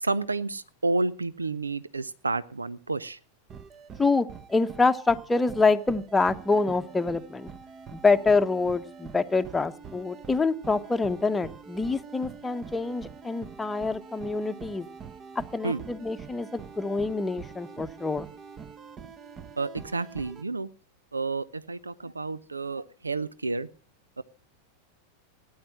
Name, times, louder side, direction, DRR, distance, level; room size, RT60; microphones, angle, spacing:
voice 1, 0.0-3.2 15.6-15.8 19.6-20.7 21.1-23.7 24.2-24.3, right 3 dB, 80° right, 19 dB, 0.7 m, -30 dB
sound 1, 3.5-20.4, right 6 dB, 25° right, 1.1 m, -45 dB
voice 2, 4.0-7.5 7.9-14.9 15.3-18.3, left 3 dB, 10° left, 8 dB, 1.0 m, -26 dB
17.5 x 10.5 x 6.3 m, 0.40 s
figure-of-eight pair, 90°, 0 cm